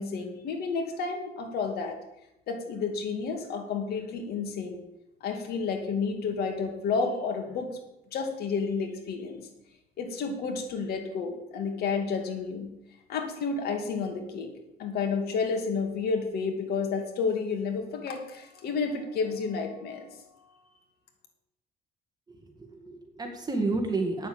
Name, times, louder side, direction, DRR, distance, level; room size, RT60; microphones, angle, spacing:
voice 1, 0.0-2.0 2.5-4.8 5.2-7.8 8.1-9.5 10.0-12.7 13.1-14.5 14.8-20.2, left 5 dB, 70° left, 4 dB, 2.6 m, -31 dB
voice 2, 22.3-24.3, right 3 dB, 25° right, 3 dB, 2.0 m, -31 dB
9.0 x 7.2 x 8.8 m, 0.89 s
cardioid pair, 110°, 17 cm